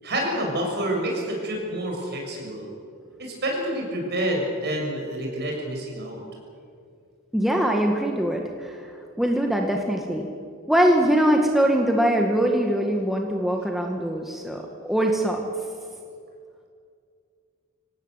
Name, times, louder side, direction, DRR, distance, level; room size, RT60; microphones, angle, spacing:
voice 1, 0.0-2.7 3.2-6.2, right 1 dB, 50° right, 0 dB, 7.1 m, -28 dB
voice 2, 7.3-10.3 10.7-15.4, right 1 dB, ahead, 1 dB, 1.7 m, -22 dB
26.0 x 18.0 x 8.2 m, 2.3 s
head